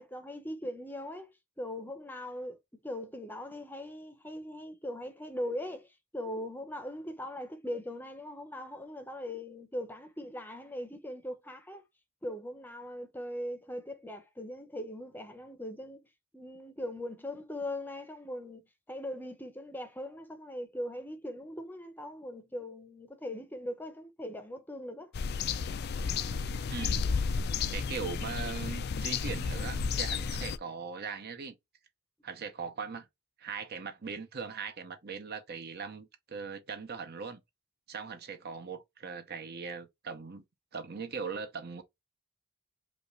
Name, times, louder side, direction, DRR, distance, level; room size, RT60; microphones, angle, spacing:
voice 1, 0.0-2.6 2.8-11.8 12.2-16.1 16.3-25.1, left 1 dB, 10° left, 0.7 m, -40 dB
Birds on Country Road with Car Passes, 25.1-30.6, left 5 dB, 50° left, 0.4 m, -32 dB
voice 2, 26.7-27.1 27.7-31.5 32.2-33.1 33.4-37.4 37.9-40.4 40.7-41.8, right 5 dB, 50° right, 0.7 m, -40 dB
5.2 x 2.4 x 3.1 m
head